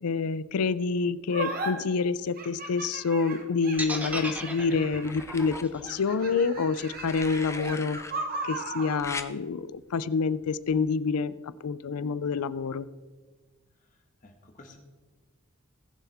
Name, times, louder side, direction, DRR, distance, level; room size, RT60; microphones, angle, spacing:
voice 1, 0.0-8.0 8.4-11.3 11.6-12.9, left 5 dB, 85° left, 17 dB, 0.5 m, -27 dB
sound 1, 1.3-1.7 2.4-5.2 5.8-9.0, right 2 dB, 40° right, 1.3 m, -37 dB
sound 2, 3.7-4.4 5.0-5.6 6.8-8.1 9.0-9.3 10.7-10.9, left 3 dB, 10° left, 0.4 m, -40 dB
sound 3, 3.8-7.8, right 1 dB, 5° right, 0.9 m, -37 dB
voice 2, 13.8-14.8, left 2 dB, 35° left, 3 dB, 1.5 m, -54 dB
19.5 x 7.1 x 3.5 m, 1.4 s
head